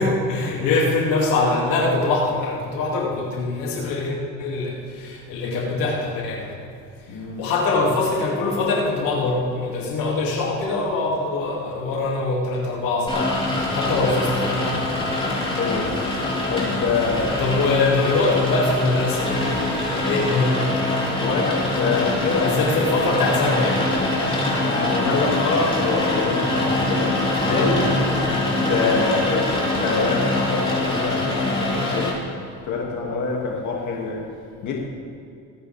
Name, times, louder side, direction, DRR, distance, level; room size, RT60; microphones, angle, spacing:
voice 1, 0.0-6.5 7.4-13.4 13.7-14.7 17.4-19.3 20.0-20.6 22.4-23.8, left 3 dB, 75° left, -2 dB, 2.7 m, -23 dB
voice 2, 7.1-7.4 14.0-14.1 15.5-15.9 16.5-17.6 21.1-22.6 24.5-27.9 28.3-32.2 32.6-34.2 34.6-34.8, left 4 dB, 60° left, -2 dB, 2.6 m, -25 dB
Rain, 13.1-32.1, left 2 dB, 15° left, 3.9 m, -24 dB
23.5 x 8.8 x 3.6 m, 2.4 s
supercardioid pair, 95°, 34 cm